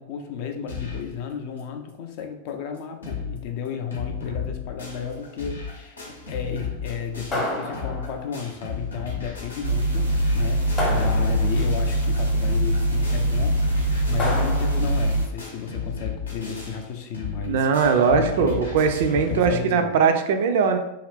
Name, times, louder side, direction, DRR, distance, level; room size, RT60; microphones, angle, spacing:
voice 1, 0.0-18.7 19.1-19.9, left 7 dB, 45° left, 5 dB, 0.4 m, -33 dB
sound 1, 0.7-1.1 1.6-1.7 1.9-2.0 2.5-2.6 2.8-3.4 3.6-19.5, left 5 dB, 75° left, 0.7 m, -34 dB
sound 2, 7.3-8.4 10.8-11.7 14.2-15.1, left 1 dB, 25° left, 0.8 m, -29 dB
sound 3, 9.6-15.3, right 1 dB, 85° right, 0.7 m, -23 dB
voice 2, 17.5-20.8, right 5 dB, 55° right, 7 dB, 0.3 m, -20 dB
2.7 x 2.4 x 3.2 m, 0.87 s
figure-of-eight pair, 90°, 0 cm